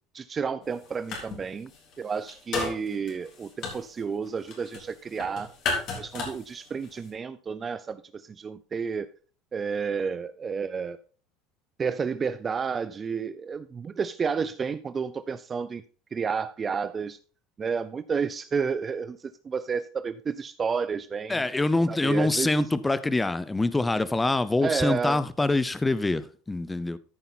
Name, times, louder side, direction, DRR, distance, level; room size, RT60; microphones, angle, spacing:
voice 1, 0.1-1.7 2.0-5.5 5.9-9.1 9.5-11.0 11.8-15.8 16.1-17.2 17.6-21.4 21.9-22.5 24.6-25.2, right 6 dB, 25° right, 0.5 m, -31 dB
sound 1, 0.6-1.4 1.7-7.1, left 4 dB, 50° left, 3.7 m, -34 dB
voice 2, 21.3-27.0, left 2 dB, 10° left, 0.7 m, -25 dB
13.5 x 5.5 x 4.1 m
supercardioid pair, 115°, 0 cm